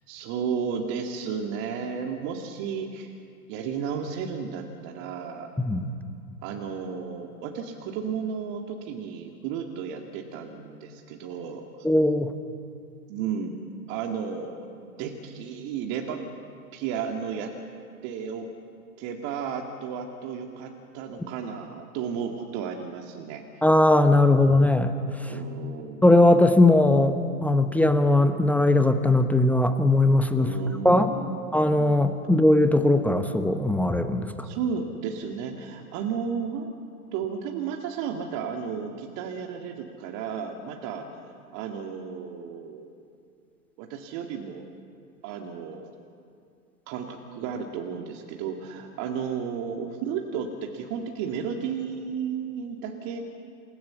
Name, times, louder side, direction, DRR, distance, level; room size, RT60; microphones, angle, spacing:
voice 1, 0.1-3.2 3.5-5.5 6.4-11.9 13.1-13.6 13.9-16.2 16.7-17.5 18.0-18.5 19.0-23.4 25.3-26.1 30.3-31.5 34.4-36.7 37.1-41.1 41.5-42.9 43.8-44.7 45.2-45.9 46.9-53.2, right 6 dB, 40° right, 2 dB, 2.1 m, -33 dB
voice 2, 5.6-5.9 11.8-12.3 23.6-25.4 26.0-30.5 30.8-31.1 31.5-34.5, left 2 dB, 5° left, 9 dB, 0.9 m, -20 dB
27.5 x 17.5 x 7.1 m, 2.4 s
figure-of-eight pair, 105°, 45 cm